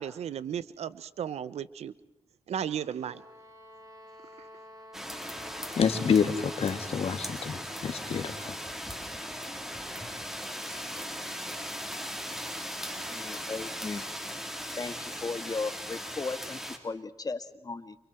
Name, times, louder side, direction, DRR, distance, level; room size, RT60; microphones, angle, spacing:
voice 1, 0.0-1.9 2.5-3.2 4.4-4.5, right 9 dB, 85° right, 16 dB, 1.0 m, -35 dB
sound 1, 2.9-7.6, equal, 35° right, 8.0 m, -50 dB
sound 2, 4.9-16.8, equal, 5° right, 3.9 m, -38 dB
voice 2, 5.7-8.5 10.6-10.8 11.3-11.5, left 6 dB, 70° left, 8 dB, 2.5 m, -28 dB
voice 3, 13.1-14.1 14.8-18.0, left 3 dB, 35° left, 10 dB, 1.8 m, -36 dB
29.5 x 27.5 x 4.5 m, 0.89 s
cardioid pair, 75°, 11 cm